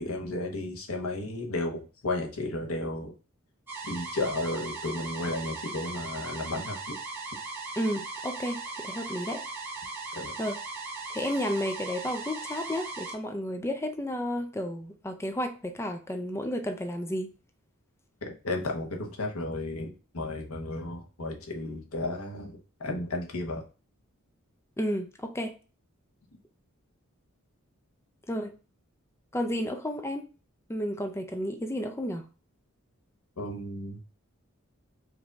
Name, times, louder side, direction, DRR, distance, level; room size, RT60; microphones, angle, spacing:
voice 1, 0.0-3.1 3.8-6.9 10.1-10.3 18.2-23.6 33.4-34.0, left 2 dB, 85° left, 1.1 m, -33 dB
sound 1, 3.7-13.1, right 3 dB, 10° right, 1.2 m, -38 dB
voice 2, 7.8-9.4 10.4-10.6 11.1-17.3 24.8-25.5 28.3-28.5 29.3-30.3 30.7-32.3, equal, 10° left, 0.4 m, -32 dB
5.0 x 2.7 x 3.4 m
head